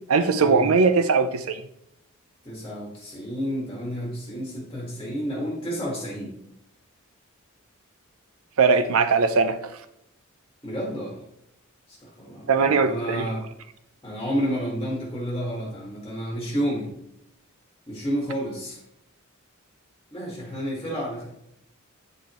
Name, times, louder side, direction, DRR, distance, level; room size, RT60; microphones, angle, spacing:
voice 1, 0.1-1.6 8.6-9.6 12.5-13.3, right 4 dB, 85° right, 0.6 m, -20 dB
voice 2, 2.4-6.3 10.6-11.2 11.9-13.4 14.0-16.9 17.9-18.8 20.1-21.3, equal, 20° left, 1.8 m, -30 dB
9.0 x 5.1 x 3.0 m
head